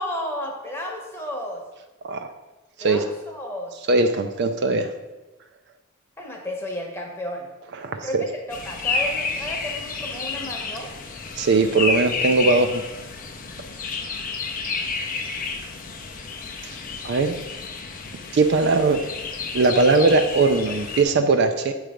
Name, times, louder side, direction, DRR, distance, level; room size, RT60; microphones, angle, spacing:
voice 1, 0.0-1.6 2.8-3.7 6.2-7.5 8.0-8.2 8.5-10.9, left 1 dB, 10° left, 0 dB, 0.9 m, -32 dB
voice 2, 3.9-4.9 7.8-8.2 11.4-12.8 17.0-17.3 18.3-19.0 19.5-21.7, right 3 dB, 50° right, 7 dB, 0.4 m, -19 dB
sound 1, 8.5-21.0, left 4 dB, 40° left, 0.5 m, -30 dB
7.7 x 3.2 x 4.9 m, 1.1 s
head